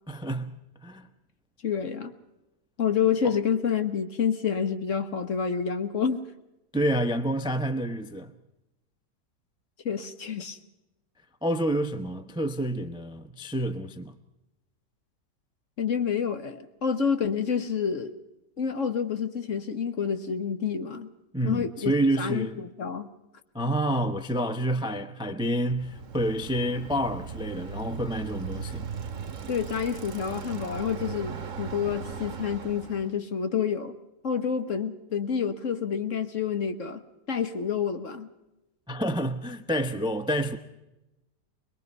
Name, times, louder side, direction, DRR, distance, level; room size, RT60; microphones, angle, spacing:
voice 1, 0.1-0.5 0.8-1.1 3.2-3.3 6.7-8.3 11.4-14.2 21.3-22.6 23.5-28.9 38.9-40.6, right 1 dB, 5° right, 0.4 m, -28 dB
voice 2, 1.6-2.1 2.8-6.2 9.8-10.6 15.8-18.2 18.6-21.1 21.4-21.9 22.2-23.1 29.5-33.9 34.2-37.0 37.3-38.3, left 7 dB, 50° left, 1.4 m, -28 dB
Bicycle, 25.6-33.1, right 6 dB, 50° right, 1.5 m, -38 dB
22.5 x 22.0 x 5.4 m
omnidirectional pair, 1.8 m